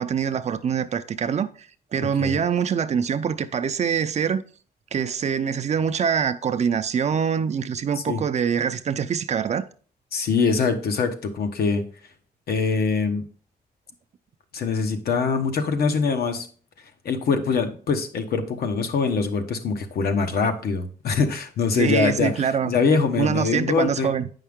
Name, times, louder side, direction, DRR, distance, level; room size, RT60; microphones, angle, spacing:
voice 1, 0.0-1.5 1.9-4.4 4.9-9.7 21.8-22.7 23.2-24.3, right 7 dB, 45° right, 0.5 m, -24 dB
voice 2, 10.1-11.8 12.5-13.2 14.5-16.5 17.0-24.1, left 5 dB, 70° left, 1.1 m, -23 dB
8.6 x 5.6 x 3.6 m
wide cardioid pair, 140°, 16 cm